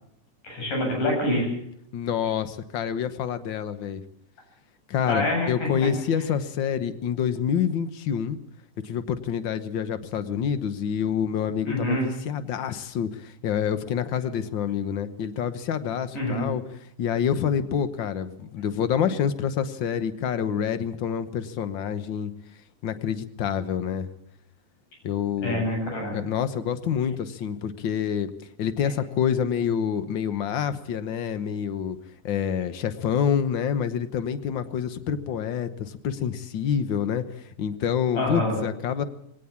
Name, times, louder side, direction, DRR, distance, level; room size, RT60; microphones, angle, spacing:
voice 1, 0.4-1.5 5.1-5.7 11.6-12.1 16.1-16.4 25.4-26.2 38.1-38.6, left 1 dB, 85° left, 1 dB, 9.7 m, -26 dB
voice 2, 1.9-4.0 4.9-8.4 8.8-16.6 17.0-22.3 22.8-24.1 25.0-25.7 26.1-28.3 28.6-32.0 32.2-39.0, left 8 dB, 65° left, 12 dB, 1.1 m, -27 dB
20.0 x 18.0 x 7.2 m, 0.70 s
omnidirectional pair, 3.6 m